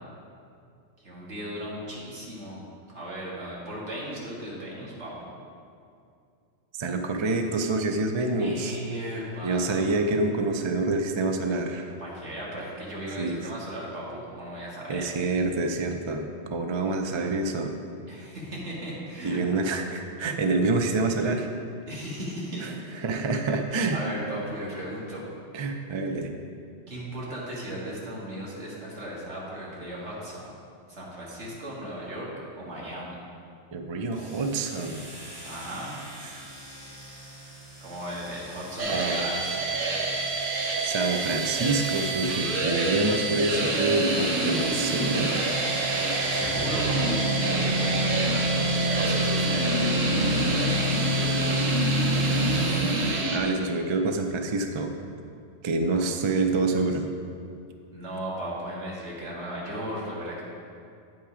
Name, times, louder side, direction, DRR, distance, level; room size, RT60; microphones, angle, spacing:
voice 1, 1.0-2.6 2.9-5.3 8.4-9.9 12.0-15.1 18.1-19.4 21.9-23.0 23.9-25.3 26.9-30.5 30.9-33.1 35.4-35.9 37.8-39.6 46.2-50.3 55.9-56.0 57.9-60.4, right 1 dB, 65° right, -5 dB, 2.1 m, -36 dB
voice 2, 6.8-8.8 9.4-11.9 13.2-13.5 14.9-17.7 19.2-21.5 22.6-22.7 23.0-24.0 25.5-26.3 33.7-35.0 36.2-36.5 38.9-39.3 40.8-45.3 53.3-54.9 55.6-57.0, right 3 dB, 50° right, 5 dB, 0.3 m, -27 dB
sound 1, 34.1-53.2, equal, 20° right, 1.3 m, -31 dB
sound 2, 38.8-53.4, right 2 dB, 85° right, 1.4 m, -27 dB
8.9 x 5.8 x 4.9 m, 2.4 s
omnidirectional pair, 1.3 m